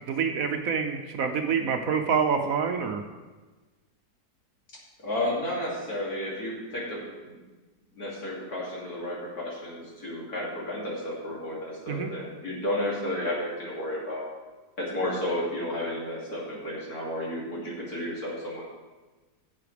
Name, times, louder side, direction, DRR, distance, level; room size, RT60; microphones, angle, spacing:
voice 1, 0.1-3.0 11.9-12.1, right 6 dB, 65° right, 5 dB, 1.1 m, -26 dB
voice 2, 5.0-7.4 7.9-14.3 14.8-18.6, left 1 dB, 65° left, -5 dB, 3.2 m, -32 dB
15.5 x 7.6 x 3.4 m, 1.3 s
omnidirectional pair, 1.8 m